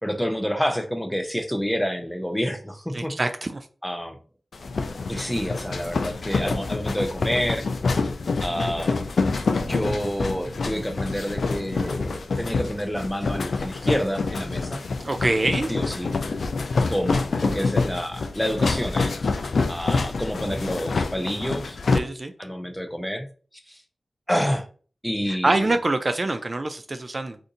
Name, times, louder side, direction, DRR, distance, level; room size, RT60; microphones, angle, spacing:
voice 1, 0.0-3.1 3.8-4.2 5.1-7.7 8.4-9.0 9.6-14.8 15.7-16.1 16.9-19.2 19.7-21.8 22.4-23.3 23.7-23.8 24.3-24.7 25.0-25.7, equal, 5° left, 4 dB, 0.6 m, -28 dB
voice 2, 2.9-3.7 15.0-15.7 21.9-22.3 25.3-27.4, right 2 dB, 45° right, 8 dB, 0.4 m, -25 dB
sound 1, 4.5-22.0, left 4 dB, 80° left, 0.3 m, -26 dB
2.6 x 2.5 x 3.7 m, 0.40 s
cardioid pair, 50°, 0 cm